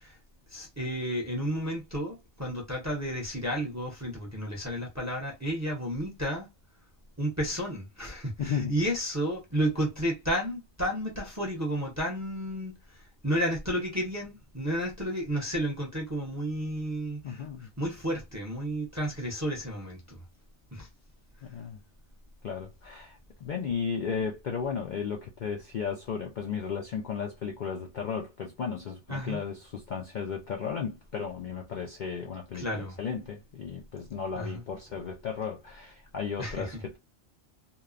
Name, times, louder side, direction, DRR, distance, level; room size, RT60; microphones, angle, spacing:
voice 1, 0.5-6.5 7.2-17.4 17.8-20.2 20.7-20.9 29.1-29.4 32.5-33.0 34.3-34.6 36.4-36.7, equal, 20° right, 0.5 m, -32 dB
voice 2, 8.4-8.8 17.2-17.7 21.4-21.8 22.4-37.0, left 6 dB, 60° left, 0.5 m, -34 dB
2.8 x 2.1 x 2.4 m
omnidirectional pair, 1.2 m